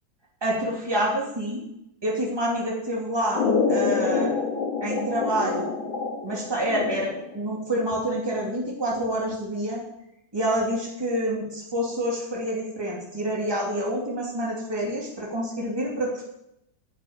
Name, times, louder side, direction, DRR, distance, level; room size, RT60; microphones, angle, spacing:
voice 1, 0.4-1.6 2.0-4.3 4.8-5.7 6.2-9.8 10.3-16.3, right 1 dB, 10° right, -3 dB, 2.8 m, -27 dB
sound 1, 3.3-7.4, left 5 dB, 90° left, 2.2 m, -26 dB
10.0 x 6.6 x 9.0 m, 0.83 s
omnidirectional pair, 2.1 m